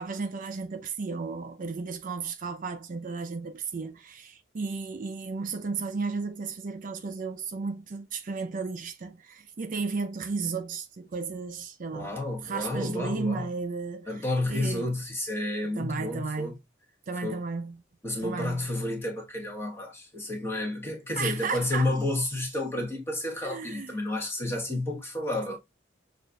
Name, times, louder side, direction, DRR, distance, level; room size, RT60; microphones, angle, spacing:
voice 1, 0.0-12.2 12.4-14.9 15.8-16.6 17.1-17.8 18.2-18.7 21.2-21.9 23.4-23.9, right 4 dB, 45° right, 0.4 m, -34 dB
voice 2, 11.9-13.5 14.1-16.6 17.2-17.4 18.0-25.6, left 1 dB, 15° left, 1.1 m, -31 dB
6.2 x 2.5 x 2.3 m
head